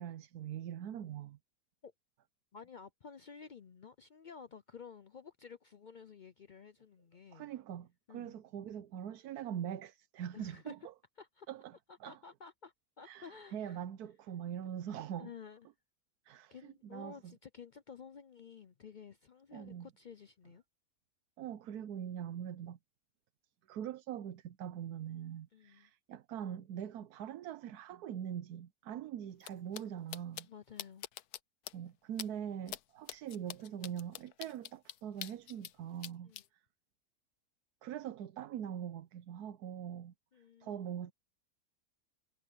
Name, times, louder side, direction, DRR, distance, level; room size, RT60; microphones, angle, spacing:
voice 1, 0.0-1.4 7.3-10.8 11.5-11.7 12.0-12.2 13.0-15.3 16.3-17.3 19.5-19.9 21.4-22.8 23.7-30.5 31.7-36.3 37.8-40.1 40.6-41.1, right 9 dB, 85° right, 1.3 m, -42 dB
voice 2, 2.5-7.5 8.1-8.4 10.3-10.7 11.2-11.5 11.9-13.8 15.2-15.7 16.3-20.6 25.5-25.9 30.5-31.1 36.2-36.4 40.3-40.9, left 6 dB, 65° left, 0.4 m, -53 dB
sound 1, 29.4-29.5 29.7-29.8 30.1-30.4 30.8-31.4 31.7-31.8 32.2-32.3 32.7-32.8 33.1-35.7 36.0-36.4, left 12 dB, 80° left, 1.3 m, -43 dB
omnidirectional pair, 1.6 m